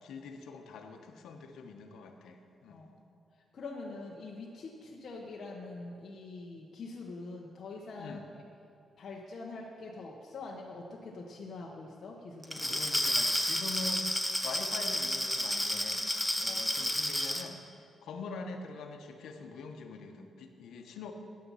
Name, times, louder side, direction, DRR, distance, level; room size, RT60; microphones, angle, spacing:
voice 1, 0.0-2.8 8.0-8.3 12.6-14.1 14.4-16.1 16.4-21.1, left 4 dB, 90° left, 5 dB, 1.1 m, -44 dB
voice 2, 2.7-3.2 3.5-8.4 9.0-12.8 16.4-16.6, left 3 dB, 50° left, -2 dB, 1.1 m, -44 dB
Glass, 12.4-17.5, left 1 dB, ahead, 0.7 m, -31 dB
13.0 x 8.7 x 5.6 m, 2.5 s
cardioid pair, 145°, 0 cm